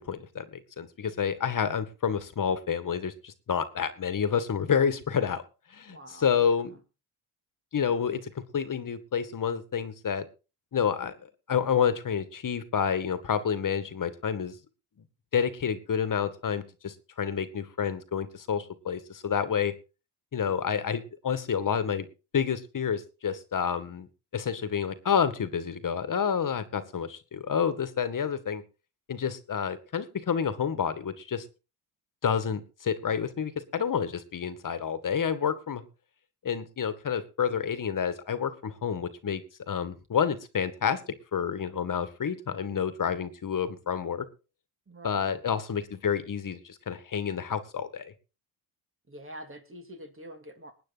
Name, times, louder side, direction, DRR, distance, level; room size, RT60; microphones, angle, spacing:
voice 1, 0.0-5.4 5.7-6.8 7.7-10.3 10.7-11.1 11.5-14.6 15.3-19.7 20.3-22.1 22.3-24.1 24.3-28.6 29.1-31.5 32.2-35.8 36.4-41.0 41.3-44.3 45.0-48.1, left 7 dB, 45° left, 12 dB, 2.0 m, -29 dB
voice 2, 5.9-6.3 44.9-45.3 49.1-50.7, equal, 30° right, 5 dB, 2.8 m, -45 dB
20.0 x 9.2 x 4.2 m, 0.32 s
supercardioid pair, 75°, 45 cm